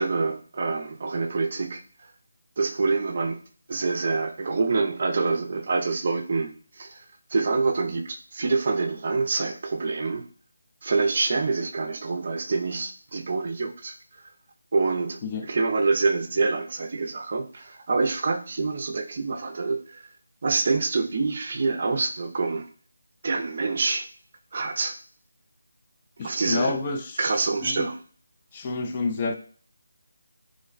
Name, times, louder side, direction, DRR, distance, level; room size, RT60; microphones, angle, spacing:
voice 1, 0.0-1.8 2.6-3.4 3.7-10.2 10.8-13.9 14.7-20.1 20.4-22.7 23.2-24.1 24.5-24.9 26.2-26.8 27.2-28.0, right 3 dB, 40° right, 0.4 m, -26 dB
voice 2, 26.2-27.2 27.6-27.9 28.5-29.3, left 3 dB, 20° left, 0.3 m, -29 dB
3.1 x 2.1 x 3.9 m
figure-of-eight pair, 170°, 0 cm